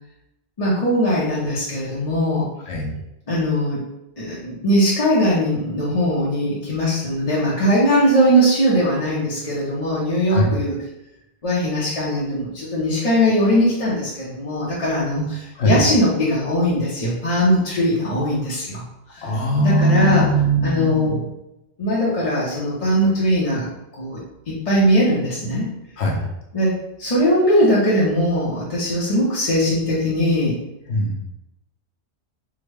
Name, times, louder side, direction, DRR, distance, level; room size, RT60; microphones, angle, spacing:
voice 1, 0.6-2.4 3.3-3.8 4.2-10.7 11.4-18.8 19.1-19.2 19.6-20.2 20.6-21.2 21.8-23.7 23.9-24.2 24.5-25.7 26.5-26.7 27.0-30.6, equal, 35° left, -7 dB, 0.7 m, -20 dB
voice 2, 19.2-21.1 26.0-26.2 30.9-31.2, equal, 65° left, -1 dB, 1.0 m, -20 dB
3.6 x 2.1 x 3.3 m, 0.90 s
omnidirectional pair, 1.2 m